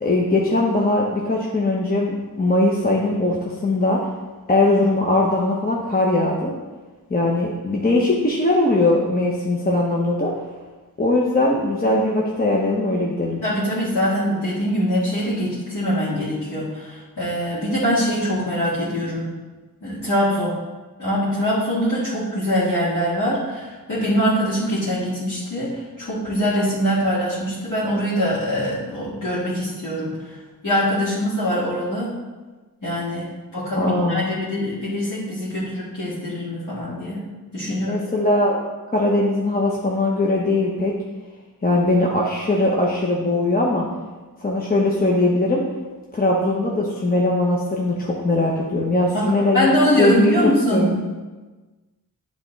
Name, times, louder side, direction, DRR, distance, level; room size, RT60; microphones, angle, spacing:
voice 1, 0.0-4.0 4.5-6.5 7.1-10.3 11.0-13.4 33.7-34.2 37.7-38.6 38.9-40.9 41.6-43.9 44.4-45.6 46.1-49.7 50.0-51.0, left 2 dB, 25° left, -2 dB, 0.8 m, -20 dB
voice 2, 13.4-19.3 19.8-20.5 21.0-30.4 30.6-32.1 32.8-33.3 33.5-37.2 37.5-38.0 49.1-50.9, equal, 60° left, -10 dB, 1.9 m, -23 dB
9.6 x 3.6 x 4.0 m, 1.3 s
wide cardioid pair, 105°, 36 cm